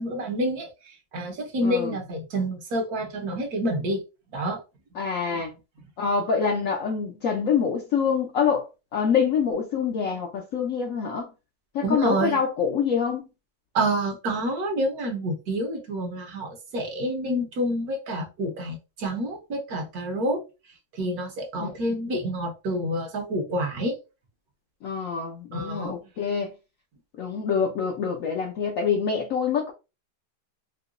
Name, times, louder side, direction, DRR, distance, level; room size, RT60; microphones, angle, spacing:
voice 1, 0.0-4.0 4.3-4.6 5.3-5.4 11.8-12.4 13.7-20.4 20.9-23.9 25.5-26.0, right 1 dB, 65° right, 1.4 m, -28 dB
voice 2, 1.6-1.9 5.0-5.5 6.0-11.3 11.7-13.3 21.6-21.7 24.8-26.5 27.2-29.7, left 6 dB, 60° left, 0.9 m, -26 dB
4.8 x 2.2 x 2.5 m
omnidirectional pair, 1.8 m